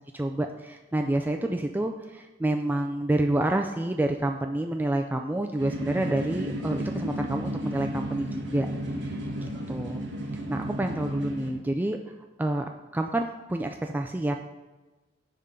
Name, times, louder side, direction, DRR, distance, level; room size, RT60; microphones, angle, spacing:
voice 1, 0.1-8.7 9.1-10.0 10.5-14.4, right 1 dB, 10° right, 4 dB, 0.3 m, -28 dB
sound 1, 5.6-11.5, equal, 70° right, 1.8 m, -33 dB
10.0 x 3.7 x 5.6 m, 1.2 s
head